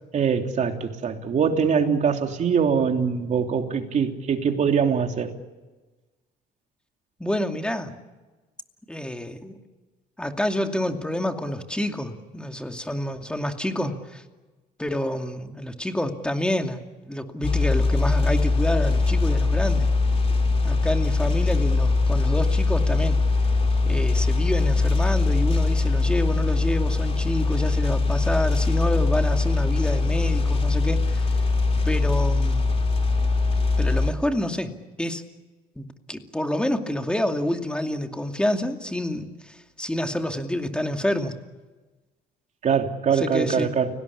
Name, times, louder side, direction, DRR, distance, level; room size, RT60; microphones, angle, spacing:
voice 1, 0.1-5.3 42.6-43.9, right 6 dB, 45° right, 4 dB, 3.2 m, -23 dB
voice 2, 7.2-7.9 8.9-9.6 10.2-14.2 14.8-19.9 20.6-23.2 23.9-31.4 31.8-32.7 33.8-34.7 35.0-35.2 35.8-41.3 43.1-43.7, left 1 dB, 5° left, 5 dB, 2.5 m, -28 dB
sound 1, 17.4-34.1, left 3 dB, 35° left, 4.2 m, -22 dB
30.0 x 18.5 x 8.5 m, 1.2 s
cardioid pair, 110°, 17 cm